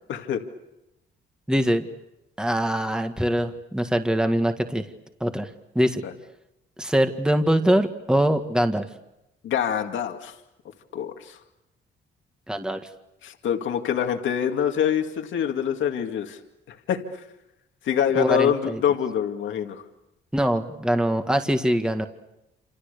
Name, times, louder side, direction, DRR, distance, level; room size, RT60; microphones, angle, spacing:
voice 1, 0.1-0.4 6.0-6.1 9.4-10.3 10.9-11.4 13.2-16.4 16.7-17.0 17.8-19.8, left 8 dB, 75° left, 4 dB, 2.2 m, -25 dB
voice 2, 1.5-1.9 2.4-4.9 5.2-5.5 5.8-6.0 6.8-8.9 12.5-12.8 18.2-18.8 20.3-22.1, equal, 5° right, 6 dB, 1.8 m, -23 dB
28.0 x 27.5 x 6.9 m, 0.93 s
cardioid pair, 90°, 20 cm